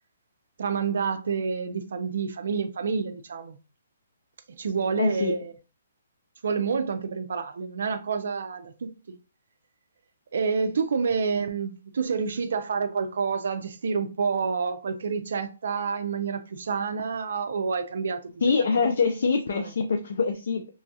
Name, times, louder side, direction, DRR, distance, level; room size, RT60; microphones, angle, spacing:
voice 1, 0.6-3.6 4.6-5.5 6.4-9.0 10.3-18.8 19.5-19.7, right 5 dB, 70° right, 0.4 m, -28 dB
voice 2, 5.0-5.3 18.4-20.7, left 4 dB, 65° left, 0.4 m, -24 dB
3.0 x 2.3 x 2.6 m
hypercardioid pair, 150°, 0 cm